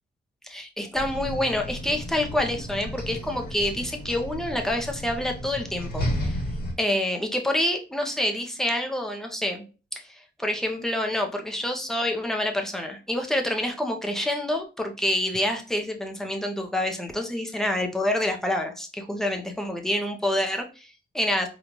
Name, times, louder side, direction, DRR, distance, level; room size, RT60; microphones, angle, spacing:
voice 1, 0.4-6.4 6.8-9.6 9.9-21.5, left 1 dB, ahead, 3 dB, 0.6 m, -27 dB
sound 1, 0.9-6.7, equal, 60° left, 1.3 m, -33 dB
5.2 x 2.3 x 3.0 m, 0.33 s
wide cardioid pair, 155°, 19 cm